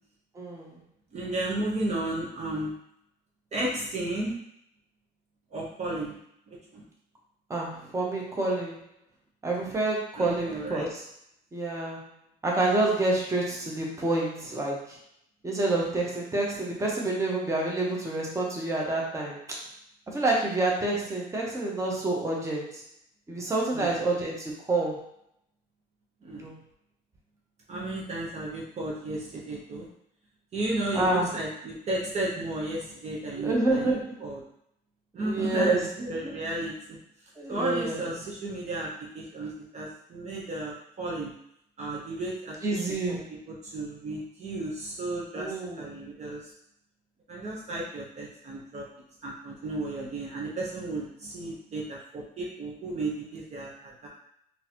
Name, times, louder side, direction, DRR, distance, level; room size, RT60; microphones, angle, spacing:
voice 1, 0.3-0.8 7.5-8.8 9.4-11.0 11.5-12.0 12.4-15.0 15.4-19.6 20.1-22.7 23.3-25.0 26.3-26.5 30.9-31.3 33.3-34.1 35.2-35.8 36.2-36.3 37.4-38.0 42.6-43.3 45.4-45.9, right 2 dB, 15° right, -2 dB, 0.9 m, -28 dB
voice 2, 1.1-2.7 3.5-4.3 5.5-6.2 6.5-6.8 10.2-10.8 23.7-24.0 26.2-26.5 27.7-29.9 30.5-34.4 35.1-37.0 37.5-41.3 41.8-42.6 43.1-43.2 43.5-46.5 47.3-48.8 49.2-54.1, right 2 dB, 40° right, -3 dB, 0.8 m, -33 dB
3.8 x 2.7 x 2.9 m, 0.74 s
cardioid pair, 110°, 17 cm